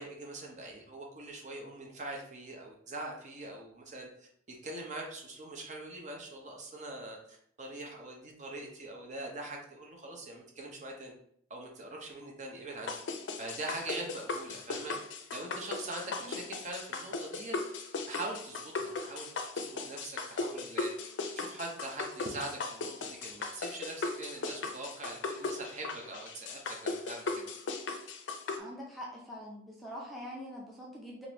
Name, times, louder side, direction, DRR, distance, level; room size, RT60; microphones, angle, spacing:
voice 1, 0.0-11.2 11.5-13.0 13.4-17.8 18.1-27.5, right 2 dB, 40° right, 0 dB, 0.7 m, -43 dB
sound 1, 12.9-28.6, left 3 dB, 90° left, 0.5 m, -37 dB
voice 2, 28.6-31.3, equal, ahead, -4 dB, 0.5 m, -44 dB
3.6 x 2.5 x 2.9 m, 0.67 s
head